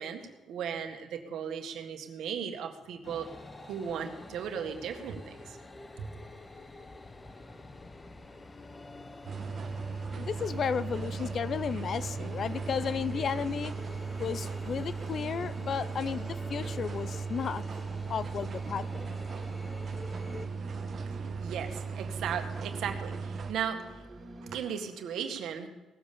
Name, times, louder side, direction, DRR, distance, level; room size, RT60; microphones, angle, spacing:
voice 1, 0.0-3.3 3.6-5.6 6.0-6.1 21.1-25.7, right 8 dB, 80° right, 5 dB, 1.8 m, -37 dB
sound 1, 3.0-20.5, left 2 dB, 25° left, 1.1 m, -48 dB
sound 2, 9.2-23.5, right 5 dB, 50° right, 1.3 m, -37 dB
voice 2, 10.2-13.7 14.2-17.6 18.1-19.1, left 7 dB, 55° left, 16 dB, 0.6 m, -33 dB
sound 3, 10.3-24.6, right 1 dB, 15° right, 2.0 m, -49 dB
18.5 x 7.7 x 6.9 m, 1.1 s
cardioid pair, 90°, 0 cm